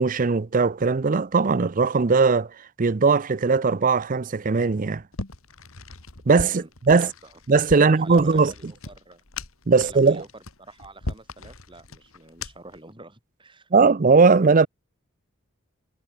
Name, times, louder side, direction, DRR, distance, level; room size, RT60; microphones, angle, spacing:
voice 1, 0.0-2.5 2.8-5.0 6.3-7.1 7.5-8.5 9.7-10.2 13.7-14.7, right 4 dB, 40° right, 0.5 m, -19 dB
sound 1, 5.1-12.8, left 2 dB, 80° left, 2.7 m, -38 dB
voice 2, 6.5-7.4 7.8-9.2 9.7-13.7, right 2 dB, 25° right, 5.9 m, -46 dB
head